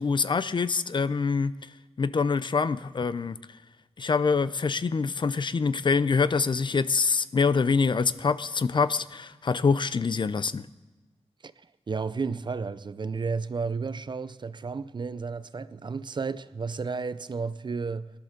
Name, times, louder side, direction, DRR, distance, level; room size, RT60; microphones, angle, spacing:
voice 1, 0.0-1.5 2.0-3.4 4.0-10.7, left 5 dB, 45° left, 0.4 m, -25 dB
voice 2, 11.4-18.1, right 4 dB, 40° right, 0.5 m, -32 dB
16.5 x 11.0 x 6.5 m
wide cardioid pair, 135°, 11 cm